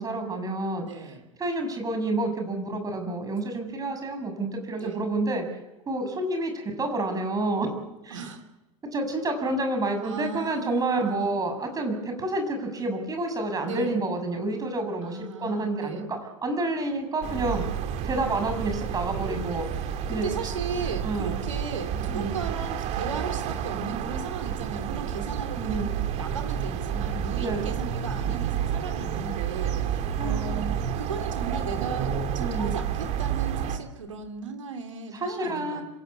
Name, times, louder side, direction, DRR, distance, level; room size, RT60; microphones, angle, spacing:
voice 1, 0.0-1.1 1.4-5.4 5.9-7.7 8.0-8.2 8.9-17.6 18.0-19.7 20.1-20.3 21.0-21.4 22.1-22.3 25.6-25.9 27.4-27.7 30.2-30.9 32.4-32.8 35.2-35.8, right 2 dB, 20° right, 5 dB, 7.2 m, -29 dB
voice 2, 0.8-1.2 4.7-5.0 8.1-8.4 10.0-11.4 13.6-14.0 15.0-16.0 20.1-35.8, right 5 dB, 75° right, 7 dB, 3.3 m, -36 dB
sound 1, 17.2-33.8, right 8 dB, 40° right, 2.7 m, -30 dB
26.5 x 16.5 x 8.6 m, 1.0 s
figure-of-eight pair, 80°, 17 cm